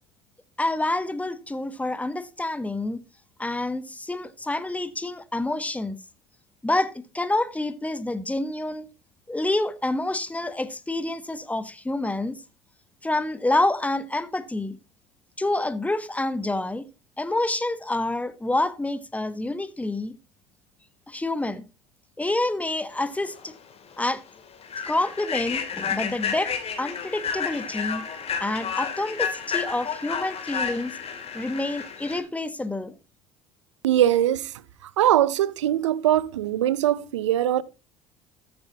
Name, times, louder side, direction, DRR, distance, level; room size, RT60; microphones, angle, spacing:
voice 1, 0.6-3.0 3.4-6.0 6.6-8.9 9.3-12.4 13.0-14.8 15.4-16.8 17.2-20.1 21.1-21.7 22.2-23.5 24.0-24.2 24.8-28.1 28.4-31.0 31.3-32.9, left 2 dB, 10° left, 1.3 m, -28 dB
Human voice / Train, 23.3-23.5 23.9-24.1 24.6-32.2, left 7 dB, 40° left, 2.8 m, -31 dB
voice 2, 33.8-37.6, right 12 dB, 85° right, 0.6 m, -22 dB
14.0 x 9.0 x 2.8 m
hypercardioid pair, 65°, 15 cm